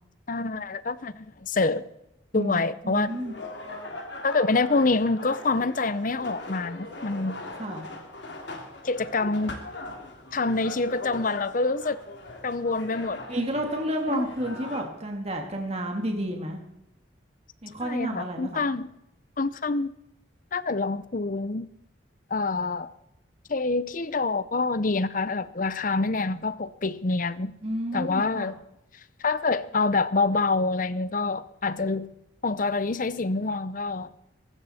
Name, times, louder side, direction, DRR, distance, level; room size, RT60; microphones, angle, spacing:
voice 1, 0.3-1.9 2.3-3.1 4.2-7.4 8.8-9.6 10.3-12.0 12.4-13.2 14.1-14.3 17.8-18.9 19.4-19.9 20.5-21.7 22.3-22.9 23.5-27.5 27.9-28.6 29.2-32.1 32.4-34.2, left 3 dB, 45° left, 0.7 m, -26 dB
voice 2, 2.3-3.3 7.6-7.8 13.3-16.6 17.6-18.6 27.6-28.5, equal, 35° right, 2.1 m, -31 dB
sound 1, 3.0-14.8, left 2 dB, 65° left, 3.0 m, -40 dB
23.0 x 13.0 x 4.3 m
head